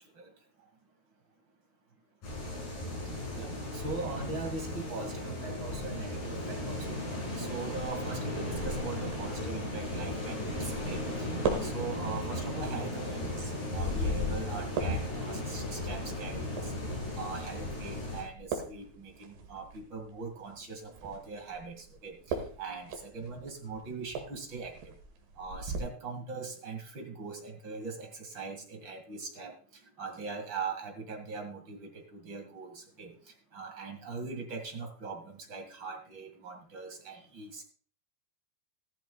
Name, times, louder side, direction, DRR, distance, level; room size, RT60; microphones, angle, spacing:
sound 1, 2.2-18.2, left 1 dB, 55° left, 8.0 m, -35 dB
voice 1, 3.3-7.0 7.4-16.7 17.1-24.9 25.4-33.1 33.5-37.6, right 4 dB, 45° right, 3 dB, 1.6 m, -41 dB
sound 2, 7.6-25.8, right 5 dB, 70° right, 3.8 m, -42 dB
14.5 x 13.5 x 2.3 m, 0.43 s
omnidirectional pair, 5.0 m